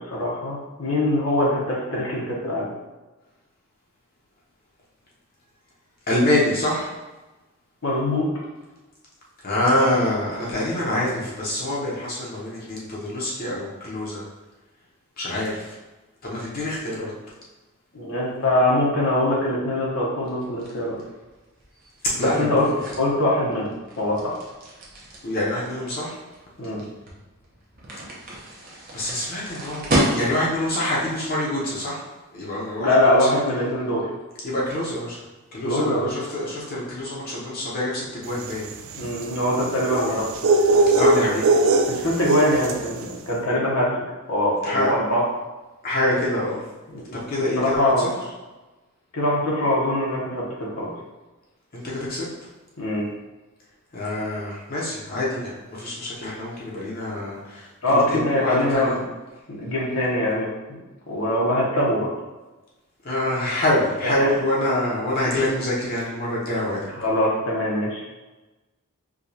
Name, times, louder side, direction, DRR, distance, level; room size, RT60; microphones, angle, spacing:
voice 1, 0.0-2.7 7.8-8.3 17.9-21.0 22.2-22.7 23.0-23.7 24.0-24.4 26.6-26.8 32.8-34.1 35.6-36.1 38.9-40.3 41.1-41.3 41.9-43.9 44.3-45.2 46.9-47.2 47.6-48.1 49.1-50.9 52.8-53.0 57.8-59.0 59.6-60.5 61.1-62.1 67.0-68.0, left 1 dB, 70° left, -4 dB, 0.9 m, -22 dB
voice 2, 6.1-6.9 9.4-14.2 15.2-15.8 16.2-17.1 22.0-22.8 25.2-26.2 28.9-29.9 30.1-32.0 32.3-33.3 34.4-35.2 35.5-38.7 40.9-41.6 44.6-44.9 45.8-46.6 47.1-48.1 51.7-52.3 53.9-59.0 63.0-66.9, left 1 dB, 40° left, -6 dB, 0.7 m, -25 dB
sound 1, 20.2-30.7, right 1 dB, 40° right, 0.7 m, -31 dB
sound 2, 38.4-42.9, right 2 dB, 60° right, 0.3 m, -21 dB
4.7 x 2.3 x 2.7 m, 1.1 s
head